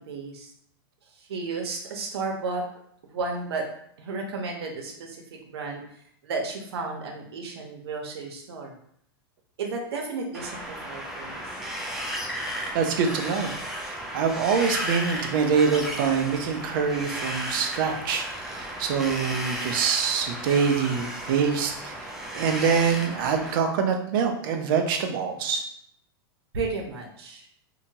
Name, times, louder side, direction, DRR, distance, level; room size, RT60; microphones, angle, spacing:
voice 1, 0.1-0.5 1.1-2.8 3.1-3.7 4.0-5.8 6.2-8.7 9.6-11.4 26.5-27.5, right 3 dB, 90° right, 1 dB, 0.8 m, -33 dB
Wind, 10.3-23.5, equal, 5° right, 0.4 m, -34 dB
voice 2, 12.7-13.5 13.8-25.6, right 6 dB, 60° right, 4 dB, 0.5 m, -25 dB
2.8 x 2.2 x 2.7 m, 0.69 s
supercardioid pair, 150°, 13 cm